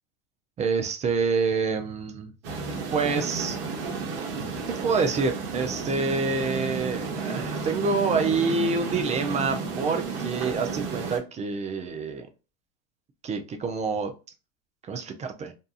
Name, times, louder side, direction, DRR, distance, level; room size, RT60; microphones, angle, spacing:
voice 1, 0.6-2.3 2.9-3.6 4.8-12.3 13.2-14.1 14.9-15.5, right 4 dB, 20° right, 0.4 m, -27 dB
sound 1, 2.4-11.2, right 4 dB, 70° right, 1.0 m, -32 dB
2.7 x 2.3 x 2.3 m
supercardioid pair, 105°, 34 cm